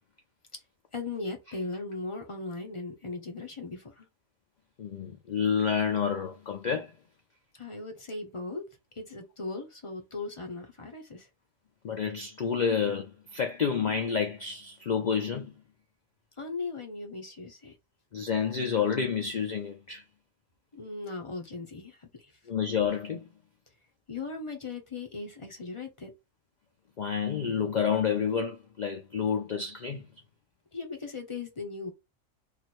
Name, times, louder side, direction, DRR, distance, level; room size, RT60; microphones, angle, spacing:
voice 1, 0.9-4.1 7.6-8.6 9.0-11.3 16.4-17.7 20.7-22.0 24.1-26.1 30.7-31.9, left 3 dB, 25° left, 0.8 m, -38 dB
voice 2, 4.8-6.9 11.8-15.5 18.1-20.0 22.5-23.3 27.0-30.1, left 7 dB, 85° left, 0.4 m, -29 dB
3.1 x 2.5 x 4.2 m
omnidirectional pair, 1.4 m